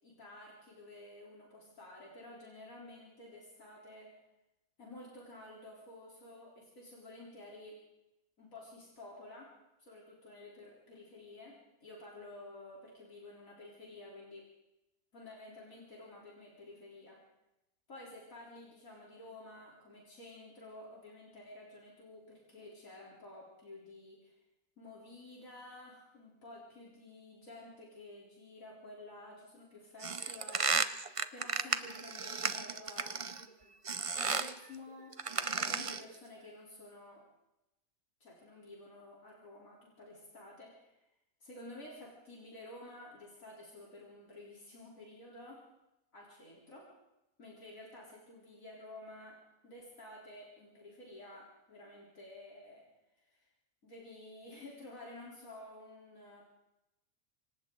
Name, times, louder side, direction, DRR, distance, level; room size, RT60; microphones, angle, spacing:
voice 1, 0.0-4.1 4.8-7.8 8.4-9.5 9.8-14.5 15.1-17.2 17.9-24.4 24.8-30.8 31.3-35.2 35.5-37.2 38.2-41.0 41.4-45.6 46.1-46.9 47.4-49.4 49.6-52.9 53.2-53.5 53.8-56.4, left 2 dB, 85° left, -5 dB, 4.2 m, -52 dB
sound 1, 30.0-33.4 33.9-34.6 35.1-36.1, right 5 dB, 30° right, 0.6 m, -34 dB
27.0 x 25.0 x 3.9 m, 0.95 s
omnidirectional pair, 1.4 m